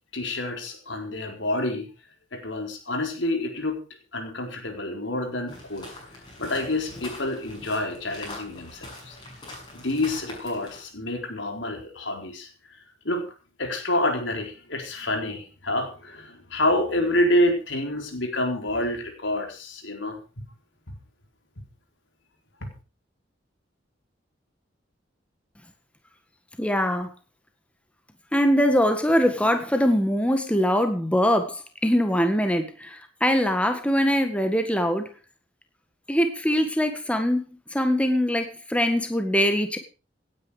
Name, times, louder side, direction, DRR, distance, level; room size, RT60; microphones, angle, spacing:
voice 1, 0.1-1.9 2.3-3.8 4.1-5.9 6.4-9.2 9.7-12.8 13.0-13.3 13.6-20.4 20.9-21.0 22.6-22.7, left 1 dB, 75° left, 4.3 m, -28 dB
sound 1, 5.5-10.9, left 2 dB, 25° left, 7.4 m, -42 dB
voice 2, 26.6-27.1 28.3-35.1 36.1-37.4 37.7-39.8, equal, 5° left, 1.8 m, -22 dB
17.5 x 10.0 x 5.1 m
head